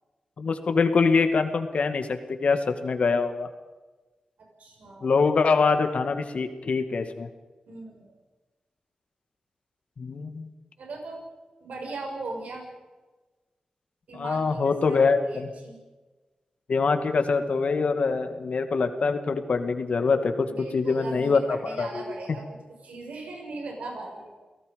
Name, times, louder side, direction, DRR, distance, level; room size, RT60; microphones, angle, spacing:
voice 1, 0.4-3.5 5.0-7.3 10.0-10.5 14.1-15.5 16.7-20.5 20.7-22.0 22.3-22.4, left 4 dB, 65° left, 7 dB, 2.2 m, -24 dB
voice 2, 4.6-5.3 7.7-8.1 10.8-11.2 11.6-12.7 14.1-15.8 20.5-22.4 22.8-24.4, right 2 dB, 85° right, 1 dB, 6.1 m, -39 dB
29.0 x 18.0 x 5.3 m, 1.2 s
cardioid pair, 80°, 2 cm